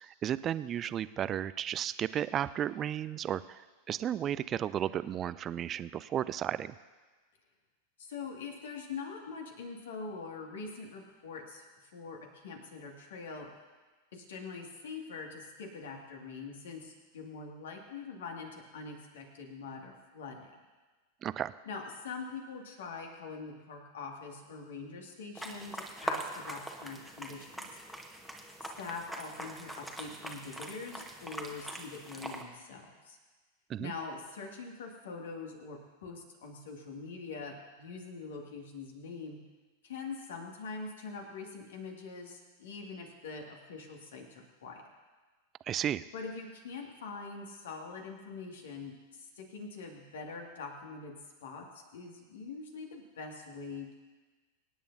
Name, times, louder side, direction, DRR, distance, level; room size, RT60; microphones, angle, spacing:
voice 1, 0.0-6.8 21.2-21.5 33.7-33.9 45.7-46.0, right 10 dB, 30° right, 16 dB, 0.4 m, -34 dB
voice 2, 8.0-11.6 11.9-13.5 14.1-20.5 21.7-27.8 28.6-33.2 33.8-39.4 39.8-44.8 46.1-53.9, left 4 dB, 60° left, 1 dB, 2.2 m, -44 dB
sound 1, 25.3-32.4, right 1 dB, ahead, 1.3 m, -42 dB
24.5 x 10.0 x 2.7 m, 1.3 s
figure-of-eight pair, 90°, 0 cm